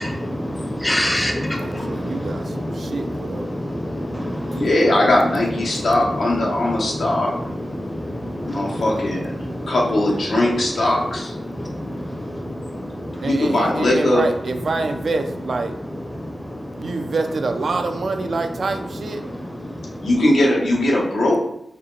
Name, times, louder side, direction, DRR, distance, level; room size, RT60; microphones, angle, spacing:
voice 1, 0.0-2.9 3.2-4.2 4.5-4.6 6.0-6.2 6.6-6.7 8.7-8.8, equal, 10° left, 2 dB, 0.6 m, -25 dB
voice 2, 1.6-3.5 4.5-4.6 13.2-15.7 16.8-19.2, right 3 dB, 65° right, 6 dB, 0.4 m, -26 dB
voice 3, 4.5-7.3 8.4-9.3 9.7-11.3 13.2-14.2 20.0-21.4, left 1 dB, 85° left, -2 dB, 0.9 m, -19 dB
4.3 x 2.1 x 3.7 m, 0.74 s
wide cardioid pair, 120°, 0 cm